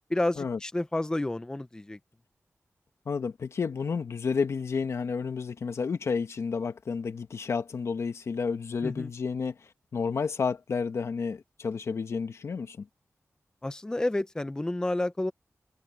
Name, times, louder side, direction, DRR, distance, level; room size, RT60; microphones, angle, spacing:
voice 1, 0.1-2.0 8.8-9.1 13.6-15.3, left 1 dB, 15° left, 0.7 m, -30 dB
voice 2, 3.1-12.9, left 5 dB, 70° left, 1.2 m, -31 dB
wide cardioid pair, 150°, 5 cm